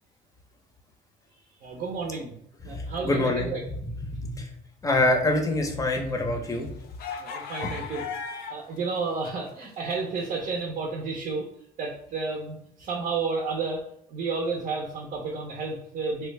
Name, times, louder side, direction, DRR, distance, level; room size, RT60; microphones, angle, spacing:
voice 1, 1.6-2.4 2.6-3.6 7.2-8.1 8.5-11.5 11.8-13.8 14.1-16.3, right 4 dB, 50° right, 0 dB, 0.6 m, -31 dB
voice 2, 2.7-3.5 4.4-4.5 4.8-6.7 7.6-7.7, left 2 dB, 20° left, 4 dB, 0.6 m, -25 dB
sound 1, 5.6-8.8 9.1-10.4, left 6 dB, 65° left, 0.5 m, -38 dB
3.2 x 2.2 x 3.2 m, 0.72 s
cardioid pair, 110°, 17 cm